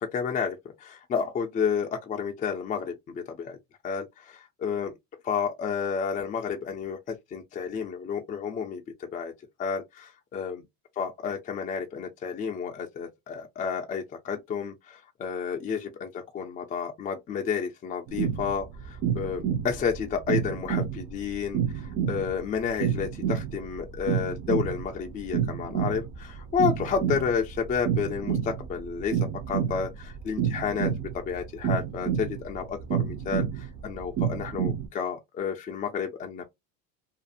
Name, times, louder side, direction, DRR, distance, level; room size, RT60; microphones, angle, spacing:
voice 1, 0.0-3.6 3.8-4.9 5.2-9.3 9.6-10.6 11.0-29.2 29.5-36.4, left 6 dB, 25° left, 0.4 m, -31 dB
sound 1, 18.1-34.9, right 8 dB, 40° right, 0.4 m, -29 dB
2.4 x 2.4 x 2.6 m
cardioid pair, 130°, 38 cm